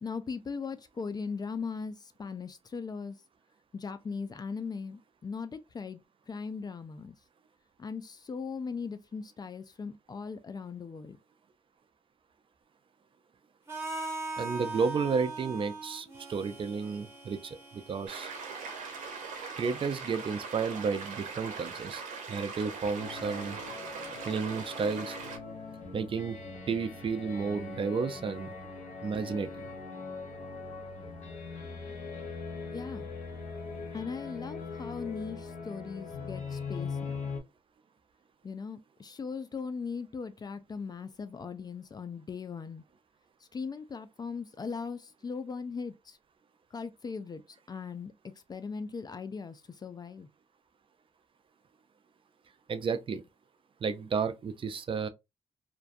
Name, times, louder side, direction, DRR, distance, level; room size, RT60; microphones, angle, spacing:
voice 1, 0.0-3.2 3.7-6.0 6.3-7.2 7.8-11.2 32.6-33.1 33.9-37.1 38.4-42.8 43.5-46.2 46.7-47.4 47.7-48.1 48.5-50.3, left 5 dB, 35° left, 0.3 m, -39 dB
Harmonica, 13.7-21.6, right 2 dB, 20° right, 1.1 m, -42 dB
voice 2, 14.4-18.3 19.6-22.0 22.3-23.7 24.2-25.2 25.9-26.4 26.7-28.5 29.0-29.7 52.7-53.2 53.8-55.1, right 5 dB, 45° right, 0.4 m, -32 dB
sound 1, 18.1-25.4, right 5 dB, 85° right, 0.6 m, -41 dB
sound 2, 23.0-37.4, left 4 dB, 80° left, 0.8 m, -41 dB
2.5 x 2.2 x 2.4 m
cardioid pair, 80°, 12 cm